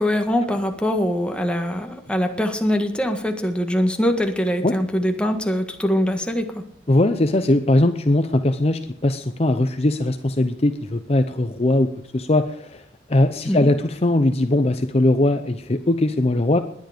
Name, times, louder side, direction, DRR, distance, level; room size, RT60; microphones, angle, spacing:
voice 1, 0.0-6.6 13.5-13.7, equal, 5° left, 4 dB, 1.6 m, -23 dB
voice 2, 6.9-12.8 13.1-16.6, left 1 dB, 35° left, 8 dB, 0.7 m, -20 dB
19.5 x 10.5 x 5.1 m, 0.75 s
head